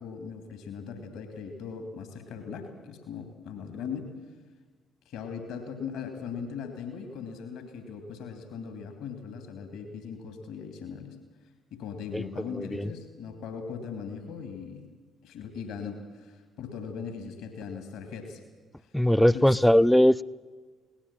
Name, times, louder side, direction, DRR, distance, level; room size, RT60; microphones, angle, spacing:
voice 1, 0.0-4.1 5.1-11.2 11.7-14.9 15.2-18.4 19.3-19.5, left 6 dB, 65° left, 6 dB, 2.7 m, -39 dB
voice 2, 12.5-12.9 18.9-20.2, equal, 5° left, 16 dB, 0.6 m, -20 dB
20.5 x 18.5 x 7.5 m, 1.4 s
figure-of-eight pair, 45°, 0 cm